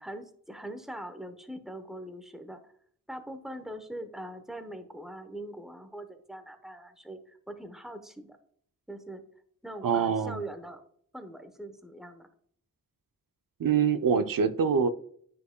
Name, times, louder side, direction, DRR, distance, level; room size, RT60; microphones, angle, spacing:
voice 1, 0.0-2.6 3.1-8.4 8.9-9.2 9.6-10.8 11.1-12.3, right 1 dB, ahead, 8 dB, 0.8 m, -42 dB
voice 2, 9.8-10.4 13.6-14.9, right 6 dB, 75° right, 11 dB, 0.6 m, -25 dB
9.7 x 4.7 x 2.2 m, 0.62 s
cardioid pair, 45°, 34 cm